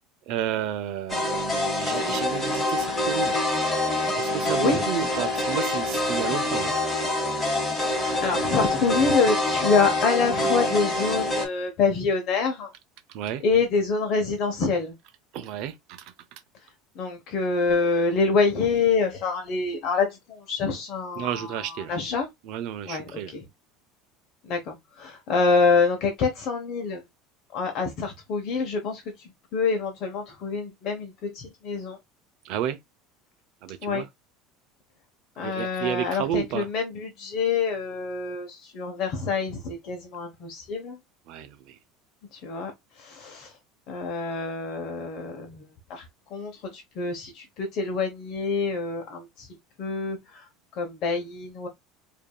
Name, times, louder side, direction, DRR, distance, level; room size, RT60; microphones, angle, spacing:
voice 1, 0.3-3.4 4.1-6.8 13.1-13.4 15.3-16.4 21.2-22.0 22.4-23.3 32.4-32.8 33.6-34.1 35.4-36.7 41.3-41.8, right 10 dB, 55° right, 0.5 m, -32 dB
sound 1, 1.1-11.5, left 2 dB, 15° left, 1.2 m, -26 dB
voice 2, 8.2-12.7 13.4-14.9 17.0-21.3 21.9-22.3 22.9-23.4 24.5-27.0 27.5-29.0 29.5-32.0 33.8-34.0 35.4-41.0 42.4-42.7 43.0-43.5 43.9-45.6 45.9-46.0 46.3-49.5 49.8-50.2 50.8-51.7, left 4 dB, 45° left, 0.9 m, -26 dB
5.1 x 2.7 x 2.2 m
cardioid pair, 160°, 0 cm